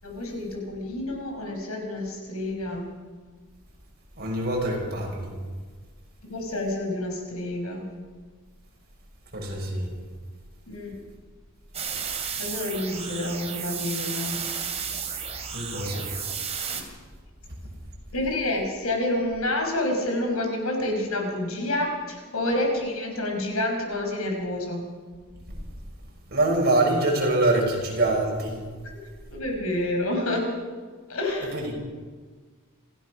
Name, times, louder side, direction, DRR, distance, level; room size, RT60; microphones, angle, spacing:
voice 1, 0.0-2.9 6.2-7.8 10.7-10.9 12.4-14.4 16.7-16.8 18.1-24.9 29.3-30.5 31.1-31.5, left 1 dB, 85° left, 2 dB, 5.3 m, -28 dB
voice 2, 4.2-5.3 9.3-9.9 15.5-16.1 26.3-28.6 31.5-31.8, right 2 dB, 50° right, -1 dB, 6.5 m, -24 dB
sound 1, 11.7-16.8, right 7 dB, 30° right, 2.9 m, -33 dB
27.0 x 16.0 x 6.3 m, 1.5 s
head